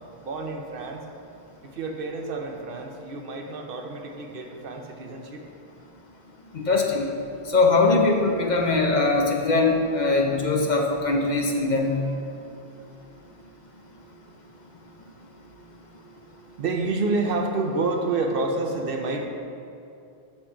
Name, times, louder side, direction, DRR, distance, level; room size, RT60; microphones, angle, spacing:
voice 1, 0.2-1.0 1.8-5.4 11.2-11.3 11.9-12.2 16.6-19.3, right 3 dB, 65° right, 3 dB, 0.8 m, -29 dB
voice 2, 6.5-7.1 7.5-12.0, left 3 dB, 50° left, 1 dB, 0.7 m, -21 dB
7.4 x 4.5 x 5.6 m, 2.6 s
omnidirectional pair, 1.1 m